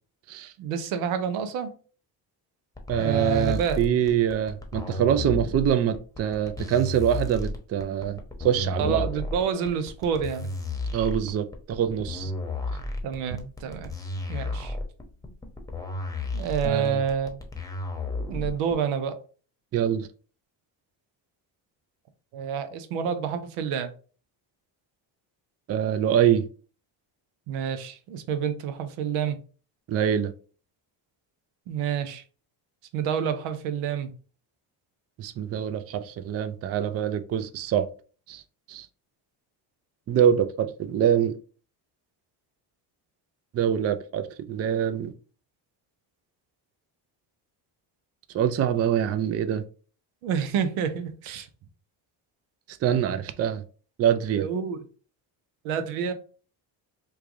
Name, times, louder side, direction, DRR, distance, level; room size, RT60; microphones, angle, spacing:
voice 1, 0.6-1.7 3.0-3.8 8.8-10.5 13.0-13.9 14.3-14.8 16.3-17.4 18.3-19.2 22.3-23.9 27.5-29.4 31.7-32.2 32.9-34.1 50.2-51.5 54.3-54.8 55.6-56.1, right 7 dB, 85° right, 0.7 m, -28 dB
sound 1, 2.8-18.7, left 2 dB, 5° left, 0.9 m, -33 dB
voice 2, 2.9-9.1 10.9-12.3 16.6-17.0 19.7-20.1 25.7-26.5 29.9-30.3 35.2-37.9 38.3-38.4 38.7-38.9 40.1-41.4 43.5-45.1 48.3-49.6 52.8-53.6 54.0-54.5, right 9 dB, 35° right, 0.4 m, -25 dB
3.2 x 2.3 x 3.6 m
supercardioid pair, 70°, 49 cm